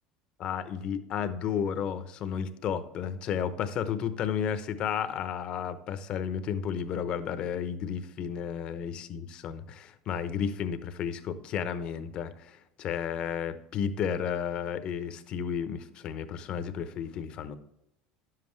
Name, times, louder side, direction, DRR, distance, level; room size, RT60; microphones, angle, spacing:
voice 1, 0.4-17.6, left 8 dB, 50° left, 11 dB, 0.9 m, -32 dB
10.5 x 7.6 x 3.2 m, 0.83 s
supercardioid pair, 105°, 2 cm